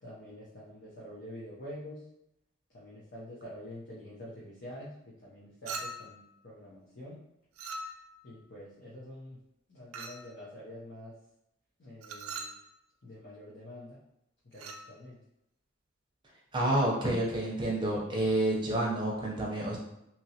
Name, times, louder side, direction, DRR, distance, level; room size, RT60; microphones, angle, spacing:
voice 1, 0.0-2.0 2.7-4.9 5.2-7.2 8.2-9.4 9.7-11.1 11.8-12.5 13.0-14.0 14.5-15.2, left 1 dB, 50° left, -7 dB, 0.7 m, -46 dB
Chink clink, 5.7-6.2 7.6-8.2 9.9-10.3 12.0-12.6 14.5-14.9, right 3 dB, 85° right, 0.4 m, -41 dB
voice 2, 16.5-19.8, right 1 dB, 20° right, -3 dB, 0.7 m, -29 dB
2.9 x 2.8 x 2.8 m, 0.83 s
head